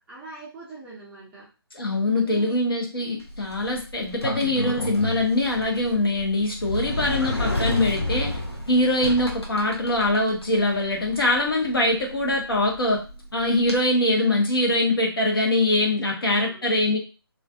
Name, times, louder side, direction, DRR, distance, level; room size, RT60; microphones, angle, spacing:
voice 1, 0.1-1.5 2.1-2.6 6.9-7.1 16.2-16.7, right 3 dB, 5° right, -8 dB, 0.5 m, -43 dB
voice 2, 1.7-8.3 8.7-13.0 13.3-17.0, left 1 dB, 65° left, 0 dB, 0.9 m, -23 dB
Sliding door, 3.2-13.8, left 1 dB, 85° left, 0.7 m, -32 dB
2.4 x 2.4 x 2.3 m, 0.33 s
figure-of-eight pair, 145°, 13 cm